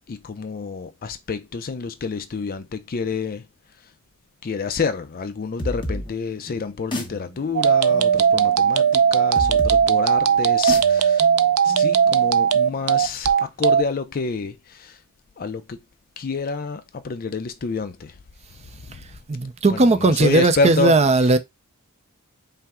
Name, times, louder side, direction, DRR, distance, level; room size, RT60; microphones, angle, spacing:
voice 1, 0.1-3.5 4.4-11.3 11.6-15.0 15.4-15.8 16.2-18.1 18.9-19.0 19.4-21.0, left 4 dB, 40° left, 0.4 m, -28 dB
sound 1, 5.6-13.0, left 1 dB, 20° left, 0.9 m, -34 dB
sound 2, 7.6-13.8, right 8 dB, 80° right, 0.4 m, -18 dB
voice 2, 19.3-21.4, right 3 dB, 30° right, 0.5 m, -17 dB
5.5 x 2.1 x 3.5 m
head